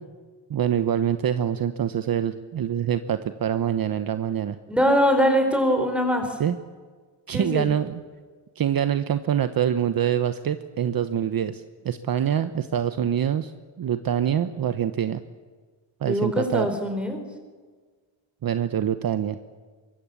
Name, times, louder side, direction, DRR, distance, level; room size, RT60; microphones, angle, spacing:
voice 1, 0.5-4.6 6.4-6.6 7.3-8.0 8.6-13.5 13.8-15.2 16.0-16.7 18.4-19.4, right 9 dB, 50° right, 11 dB, 1.0 m, -25 dB
voice 2, 4.7-6.4 7.3-7.7 16.1-17.2, equal, ahead, 6 dB, 4.7 m, -22 dB
24.0 x 22.5 x 8.4 m, 1.5 s
cardioid pair, 135°, 47 cm